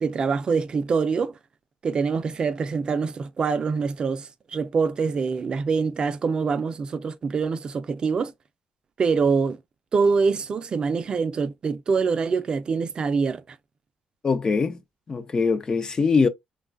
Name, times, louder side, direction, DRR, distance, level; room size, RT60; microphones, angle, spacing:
voice 1, 0.0-1.4 1.8-8.3 9.0-9.6 9.9-13.6, right 5 dB, 35° right, 0.4 m, -25 dB
voice 2, 14.2-14.8 15.1-16.3, left 4 dB, 30° left, 0.4 m, -22 dB
3.1 x 2.3 x 2.4 m
cardioid pair, 125°, 3 cm